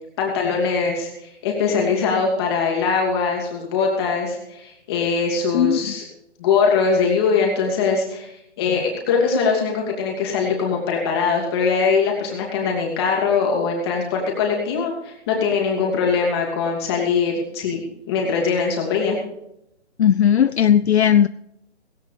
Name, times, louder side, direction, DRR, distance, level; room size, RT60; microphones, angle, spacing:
voice 1, 0.2-6.0 6.4-8.3 8.6-19.2, left 5 dB, 20° left, -1 dB, 2.6 m, -22 dB
voice 2, 20.0-21.3, left 9 dB, 65° left, 14 dB, 0.5 m, -16 dB
17.0 x 17.0 x 3.3 m, 0.82 s
hypercardioid pair, 160°, 35 cm